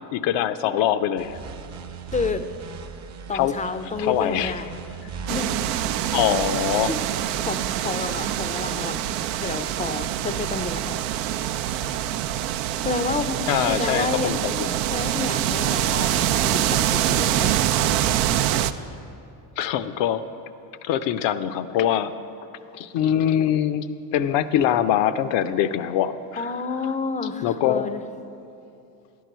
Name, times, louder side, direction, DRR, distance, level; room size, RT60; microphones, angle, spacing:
voice 1, 0.1-1.4 3.3-3.6 4.0-4.5 6.1-6.9 13.5-14.8 19.6-20.2 20.8-22.1 22.7-23.9 24.1-26.5 27.4-27.9, left 10 dB, 65° left, 12 dB, 0.6 m, -23 dB
sound 1, 1.2-7.2, right 6 dB, 35° right, 0.7 m, -39 dB
voice 2, 2.1-2.4 3.3-4.8 5.3-5.6 6.9-7.0 7.4-11.0 12.8-14.3 14.9-17.5 26.4-28.0, left 4 dB, 15° left, 11 dB, 0.4 m, -30 dB
sound 2, 5.3-18.7, right 12 dB, 75° right, 0.5 m, -25 dB
11.0 x 4.8 x 7.9 m, 2.8 s
hypercardioid pair, 65°, 48 cm